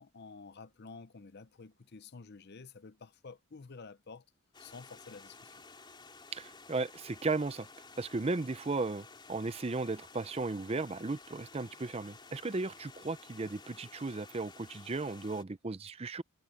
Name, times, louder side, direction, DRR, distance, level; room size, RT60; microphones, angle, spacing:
voice 1, 0.0-4.3 4.6-5.6, left 4 dB, 50° left, 0.7 m, -50 dB
Stream, 4.5-15.4, left 4 dB, 20° left, 4.5 m, -54 dB
voice 2, 6.3-7.7 8.0-16.2, right 3 dB, 30° right, 0.5 m, -35 dB
head